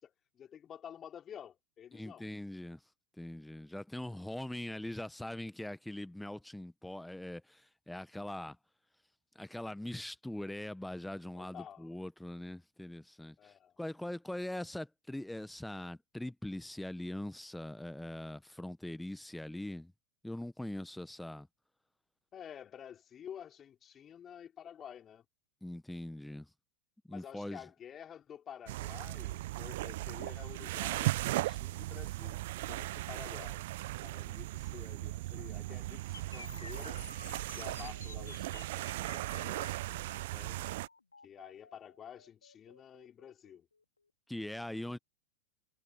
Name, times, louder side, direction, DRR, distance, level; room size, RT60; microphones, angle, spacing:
voice 1, 0.0-2.3 11.3-12.0 13.4-13.8 22.3-25.2 27.1-32.4 32.7-33.6 34.0-37.0 37.6-39.8 40.3-40.6 41.2-43.7, left 9 dB, 25° left, 5.4 m, -50 dB
voice 2, 1.9-2.8 3.2-8.6 9.3-19.9 20.2-21.5 25.6-26.5 27.0-27.6 34.2-34.4 44.3-45.0, left 1 dB, 5° left, 1.5 m, -42 dB
sound 1, 28.7-40.9, right 18 dB, 50° right, 1.0 m, -37 dB
sound 2, 36.1-44.1, left 4 dB, 80° left, 4.5 m, -52 dB
figure-of-eight pair, 90°, 0 cm